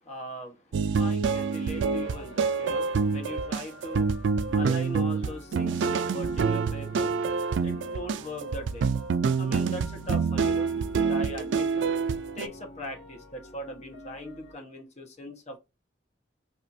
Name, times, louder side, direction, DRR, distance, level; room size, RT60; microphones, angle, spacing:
voice 1, 0.0-7.3 7.6-8.9 9.4-10.7 11.0-12.0 12.4-15.6, equal, 40° left, 1.0 m, -40 dB
sound 1, 0.7-12.5, right 5 dB, 90° right, 0.4 m, -27 dB
sound 2, 1.5-14.5, left 1 dB, 75° left, 1.5 m, -48 dB
4.3 x 2.5 x 2.5 m
head